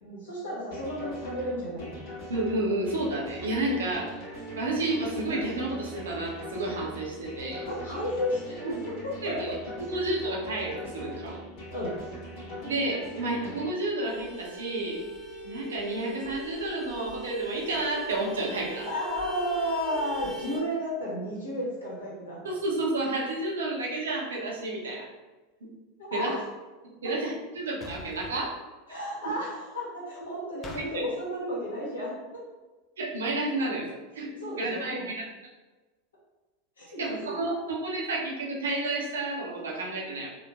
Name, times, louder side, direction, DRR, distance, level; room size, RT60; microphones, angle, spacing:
voice 1, 0.0-2.0 7.6-9.4 11.7-12.0 18.8-22.4 26.0-26.5 27.0-27.1 28.9-32.1 34.4-35.1 36.8-37.4, equal, 75° left, -7 dB, 1.0 m, -33 dB
sound 1, 0.7-13.7, equal, 50° left, 1.1 m, -41 dB
voice 2, 2.3-4.1 4.6-7.7 9.2-9.5 9.8-11.4 12.6-15.0 15.4-18.9 22.4-25.1 25.6-25.7 26.1-26.3 27.0-28.6 29.2-29.4 30.7-31.0 33.0-33.9 34.1-35.3 37.0-40.3, right 2 dB, 70° right, -2 dB, 0.5 m, -31 dB
Vehicle horn car horn honking, 14.0-20.6, right 1 dB, ahead, 1.0 m, -40 dB
sound 2, 27.8-28.3 30.6-30.9, left 2 dB, 25° left, 0.4 m, -42 dB
2.8 x 2.1 x 2.3 m, 1.2 s
figure-of-eight pair, 85°, 0 cm